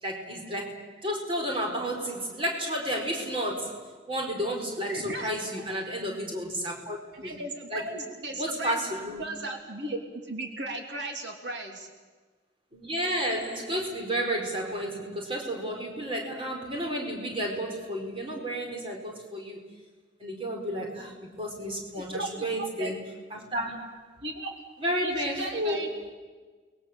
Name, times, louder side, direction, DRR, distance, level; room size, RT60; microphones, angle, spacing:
voice 1, 0.0-7.3 7.7-8.0 8.4-9.2 12.7-19.6 20.2-23.0 23.3-24.0 24.8-25.9, equal, 30° right, 1 dB, 4.7 m, -32 dB
voice 2, 4.9-5.3 5.5-5.6 5.9-6.0 7.1-8.8 9.2-11.9 22.0-22.5 22.8-22.9 24.2-24.5 25.0-26.1, right 2 dB, 75° right, 3 dB, 3.0 m, -36 dB
30.0 x 21.5 x 7.5 m, 1.4 s
head